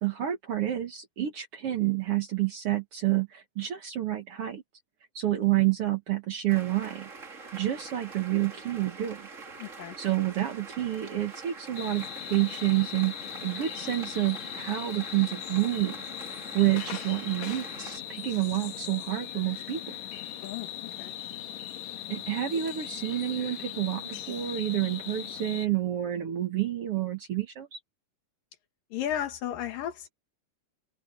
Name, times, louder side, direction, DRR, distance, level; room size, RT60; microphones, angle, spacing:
voice 1, 0.0-4.6 5.2-7.1 7.5-9.3 10.0-16.0 16.3-19.9 22.1-27.8, right 14 dB, 55° right, 1.8 m, -29 dB
sound 1, 6.5-18.0, right 4 dB, 30° right, 1.6 m, -45 dB
voice 2, 9.6-10.0 20.4-20.7 21.0-21.1 28.9-30.1, left 10 dB, 80° left, 3.5 m, -34 dB
sound 2, 11.7-25.7, left 11 dB, 60° left, 2.3 m, -39 dB
omnidirectional pair, 3.9 m